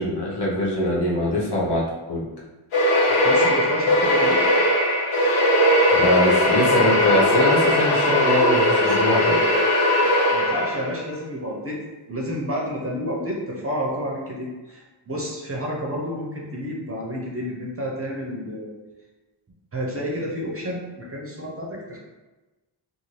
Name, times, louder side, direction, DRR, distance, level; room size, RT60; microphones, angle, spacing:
voice 1, 0.0-2.2 5.9-9.4, equal, 55° left, -5 dB, 0.9 m, -23 dB
sound 1, 2.7-11.0, left 1 dB, 80° left, 0.9 m, -19 dB
voice 2, 3.1-4.5 10.3-11.8 12.1-18.7 19.7-22.0, equal, 30° right, -3 dB, 0.6 m, -30 dB
2.6 x 2.4 x 3.1 m, 1.1 s
wide cardioid pair, 90°, 48 cm